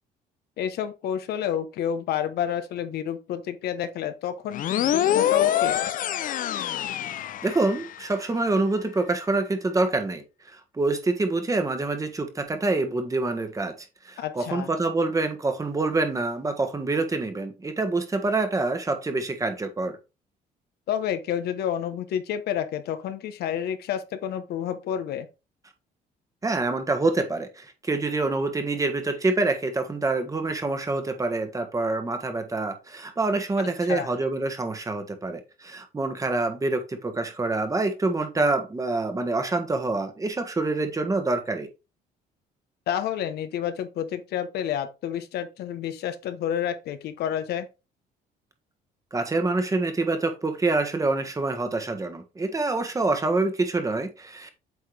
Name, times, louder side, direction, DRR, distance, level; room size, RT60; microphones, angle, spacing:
voice 1, 0.6-5.8 14.2-14.7 20.9-25.3 33.9-34.1 42.9-47.7, left 9 dB, 70° left, 1.0 m, -29 dB
sound 1, 4.5-8.0, left 11 dB, 55° left, 0.5 m, -25 dB
voice 2, 7.4-20.0 26.4-41.7 49.1-54.5, right 3 dB, 20° right, 1.4 m, -26 dB
8.1 x 4.2 x 3.3 m
cardioid pair, 110°, 17 cm